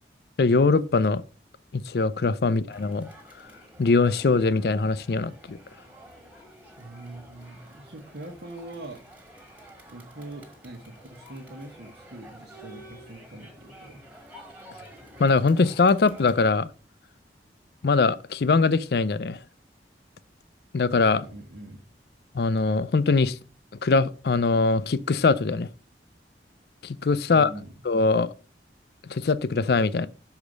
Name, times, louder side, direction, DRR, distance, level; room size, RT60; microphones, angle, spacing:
voice 1, 0.4-1.2 1.7-3.1 3.8-5.6 15.2-16.7 17.8-19.4 20.7-21.2 22.3-23.4 23.8-25.7 26.8-27.5 27.9-28.3 29.0-30.1, left 4 dB, 60° left, 0.4 m, -22 dB
Crowd, 2.7-16.4, right 1 dB, 10° right, 1.5 m, -50 dB
voice 2, 6.8-9.0 9.9-14.0 21.1-21.8 27.3-27.7, right 1 dB, 70° right, 1.2 m, -42 dB
6.4 x 4.9 x 5.2 m
head